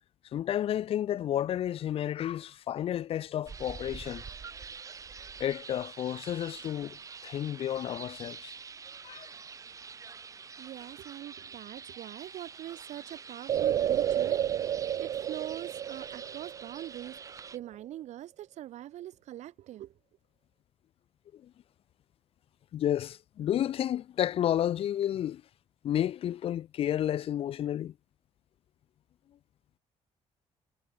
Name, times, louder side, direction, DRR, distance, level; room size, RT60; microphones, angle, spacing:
voice 1, 0.3-4.2 5.4-7.0 7.2-8.5 9.0-9.3 22.7-25.4 25.8-27.9, left 11 dB, 55° left, 0.9 m, -31 dB
sound 1, 3.5-17.6, right 5 dB, 30° right, 6.3 m, -46 dB
voice 2, 10.6-19.9, right 13 dB, 75° right, 5.9 m, -43 dB
sound 2, 13.5-17.2 17.5-17.6, right 10 dB, 45° right, 0.7 m, -30 dB
cardioid pair, 180°, 12 cm